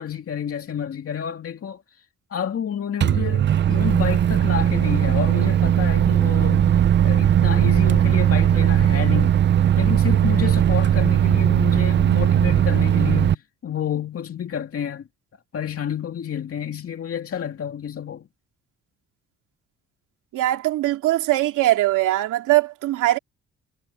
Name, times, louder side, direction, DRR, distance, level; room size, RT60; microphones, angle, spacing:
voice 1, 0.0-2.0 2.3-9.4 9.8-15.1 15.5-18.3, left 8 dB, 50° left, 2.3 m, -29 dB
Microwave oven, 3.0-13.3, right 10 dB, 40° right, 0.5 m, -18 dB
voice 2, 20.3-23.2, right 15 dB, 85° right, 2.6 m, -21 dB
cardioid pair, 90°, 30 cm